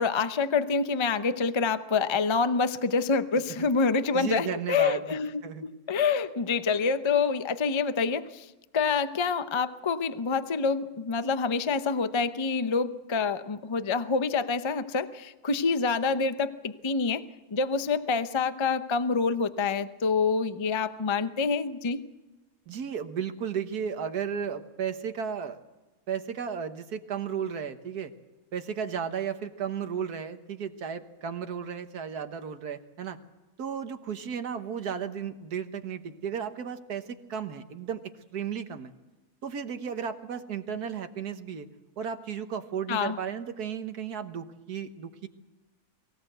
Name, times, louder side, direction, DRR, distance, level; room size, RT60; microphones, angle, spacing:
voice 1, 0.0-8.5 8.7-17.3 17.5-22.0 42.9-43.2, left 5 dB, 30° left, 11 dB, 0.6 m, -27 dB
voice 2, 4.1-5.7 22.7-25.6 26.1-28.1 28.5-33.2 33.6-38.0 38.3-38.9 39.4-41.7 42.0-45.3, right 7 dB, 85° right, 8 dB, 1.8 m, -34 dB
23.0 x 16.5 x 8.0 m, 1.1 s
omnidirectional pair, 1.6 m